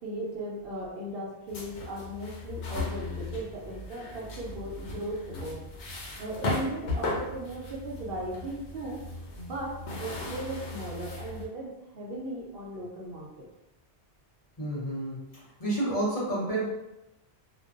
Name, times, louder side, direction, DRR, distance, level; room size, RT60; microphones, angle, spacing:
voice 1, 0.0-5.6 6.2-9.0 9.4-13.5, right 1 dB, 65° right, -3 dB, 0.7 m, -37 dB
sound 1, 1.5-11.5, left 2 dB, 90° left, 0.9 m, -37 dB
voice 2, 14.6-16.7, right 1 dB, 40° left, -8 dB, 0.8 m, -30 dB
2.4 x 2.2 x 2.4 m, 0.91 s
omnidirectional pair, 1.1 m